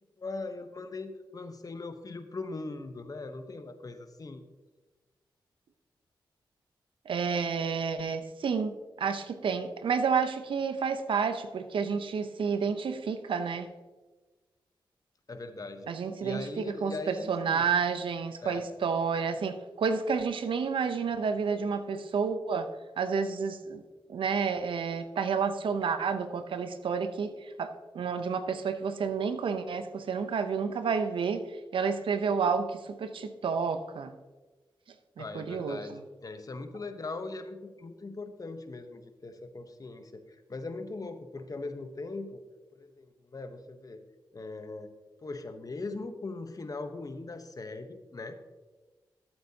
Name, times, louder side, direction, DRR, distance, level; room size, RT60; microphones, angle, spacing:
voice 1, 0.2-4.4 15.3-15.9 16.2-17.6 18.4-18.7 35.2-42.4 42.7-44.0 44.3-44.9 45.2-48.4, left 3 dB, 45° left, 8 dB, 1.0 m, -40 dB
voice 2, 7.1-13.7 15.9-22.7 23.0-23.8 24.1-31.5 31.7-34.2 35.2-36.0, right 5 dB, 80° right, 9 dB, 0.7 m, -30 dB
13.5 x 7.9 x 2.8 m, 1.2 s
cardioid pair, 50°, 9 cm